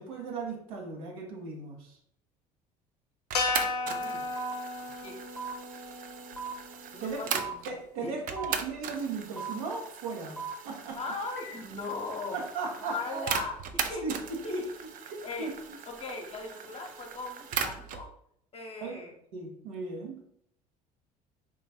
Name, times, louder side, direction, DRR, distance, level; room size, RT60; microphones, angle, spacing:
voice 1, 0.0-2.0 7.0-7.2 7.7-11.0 12.3-13.3 14.0-14.6 15.0-15.5 18.8-19.0 19.3-20.2, right 4 dB, 65° right, 1 dB, 1.0 m, -37 dB
sound 1, 3.3-7.7, left 3 dB, 80° left, 0.6 m, -35 dB
sound 2, 3.3-7.8 8.3-18.1, right 7 dB, 45° right, 0.5 m, -39 dB
sound 3, 3.4-3.5 4.4-4.5 5.4-5.5 6.4-6.5 7.4-7.5 8.4-8.5 9.4-9.5 10.4-10.5 11.4-11.5, right 6 dB, 5° left, 0.7 m, -37 dB
voice 2, 3.8-4.3 5.0-5.2 6.9-7.6 8.0-8.1 8.5-8.6 11.0-12.4 12.9-14.1 14.4-14.6 15.2-15.5 15.9-18.1 18.5-19.1, left 3 dB, 30° left, 2 dB, 1.0 m, -38 dB
3.8 x 3.1 x 4.3 m, 0.69 s
figure-of-eight pair, 60°, 20 cm